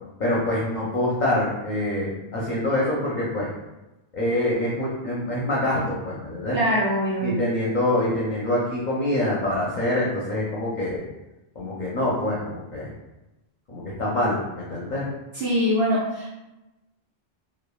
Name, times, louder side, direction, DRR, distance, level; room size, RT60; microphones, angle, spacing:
voice 1, 0.2-3.5 4.1-6.6 7.2-11.0 11.6-12.9 13.7-15.1, left 1 dB, 50° left, -6 dB, 0.6 m, -25 dB
voice 2, 6.5-7.3 15.3-16.3, equal, 85° right, -8 dB, 1.0 m, -23 dB
3.1 x 2.2 x 2.2 m, 1.0 s
omnidirectional pair, 1.1 m